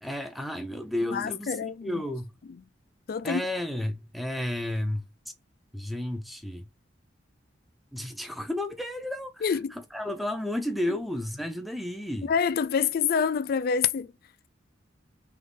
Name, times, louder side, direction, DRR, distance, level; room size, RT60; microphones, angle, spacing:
voice 1, 0.0-1.6 1.8-2.3 3.2-5.0 5.7-6.7 7.9-9.5 9.9-12.3, left 1 dB, ahead, 0.6 m, -32 dB
voice 2, 1.0-2.0 3.1-3.4 9.4-9.7 12.2-14.1, left 6 dB, 50° left, 0.3 m, -27 dB
3.4 x 3.1 x 3.9 m
head